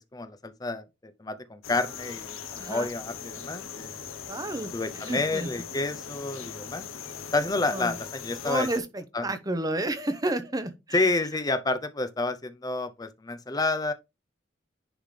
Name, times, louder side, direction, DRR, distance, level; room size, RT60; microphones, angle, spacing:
voice 1, 0.1-4.0 4.7-6.9 7.3-8.7 9.1-9.3 10.9-13.9, left 2 dB, 20° left, 0.5 m, -29 dB
sound 1, 1.6-8.8, left 7 dB, 80° left, 0.9 m, -40 dB
voice 2, 2.6-2.9 4.3-4.7 5.1-5.5 7.7-7.9 8.4-8.8 9.2-10.7, right 1 dB, 20° right, 0.8 m, -30 dB
10.0 x 3.7 x 3.2 m
head